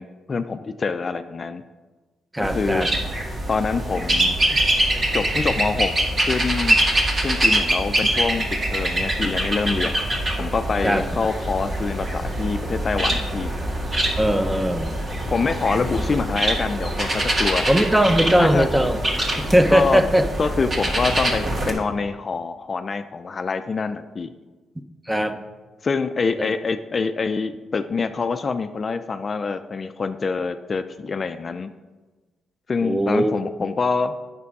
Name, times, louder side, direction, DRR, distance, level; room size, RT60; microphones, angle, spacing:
voice 1, 0.0-1.6 2.4-2.9 3.5-4.6 5.1-6.8 7.2-9.9 10.4-13.5 15.3-17.7 18.4-18.7 19.7-20.0 20.4-24.3 25.8-31.7 32.7-34.1, left 4 dB, 40° left, 9 dB, 0.4 m, -25 dB
voice 2, 2.3-2.9 10.8-11.0 14.2-14.9 17.7-19.0 19.4-20.3 25.1-25.4 26.4-26.5 32.8-33.3, equal, 10° right, 8 dB, 0.7 m, -19 dB
sound 1, 2.4-21.7, right 1 dB, 40° right, 1.8 m, -24 dB
8.4 x 6.1 x 4.7 m, 1.3 s
cardioid pair, 90°, 0 cm